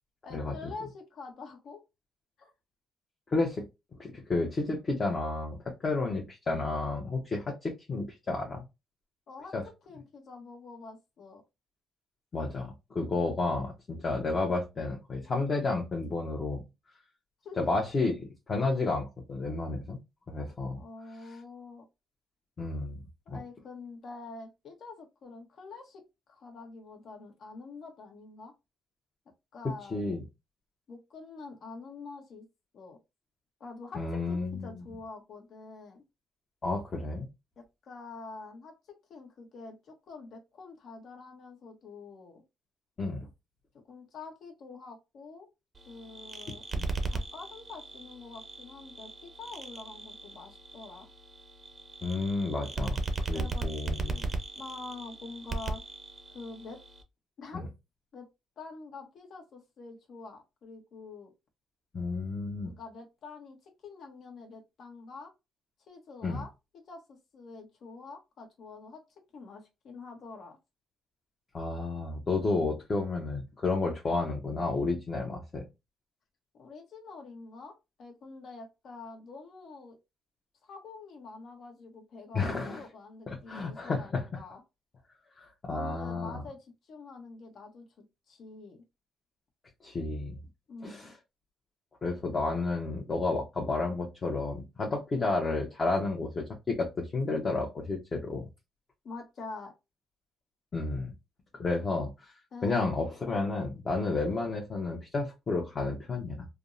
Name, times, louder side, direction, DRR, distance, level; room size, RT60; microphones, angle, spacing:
voice 1, 0.2-1.8 2.4-2.5 9.3-9.5 9.9-11.4 17.4-17.7 18.6-18.7 20.8-21.8 23.3-26.0 26.3-28.5 29.5-30.1 30.9-32.5 32.7-33.0 33.6-36.0 37.6-42.4 43.7-45.5 45.9-46.6 47.1-51.1 53.3-55.8 56.3-56.8 57.4-57.7 58.1-58.3 58.6-61.3 62.6-65.3 65.9-66.5 66.9-69.0 69.3-70.6 76.6-80.0 80.6-84.6 85.7-88.8 90.7-91.1 99.0-99.7 102.5-102.8, left 3 dB, 65° left, 1.0 m, -46 dB
voice 2, 3.3-3.6 4.0-8.6 9.5-9.6 12.3-16.6 17.6-18.2 18.5-20.0 20.3-20.8 22.6-23.0 23.3-23.4 29.9-30.2 33.9-34.8 36.6-37.3 43.0-43.3 46.8-46.9 52.0-53.0 53.3-54.2 57.5-57.6 61.9-62.7 66.2-66.4 71.5-75.6 82.3-82.8 83.3-84.2 85.4-86.4 89.8-90.4 90.8-91.1 92.0-98.5 100.7-101.1 101.5-102.3 102.6-106.5, left 3 dB, 40° left, 0.8 m, -31 dB
sound 1, 45.7-57.0, right 3 dB, 35° right, 0.5 m, -37 dB
3.4 x 2.0 x 2.5 m
cardioid pair, 90°, 0 cm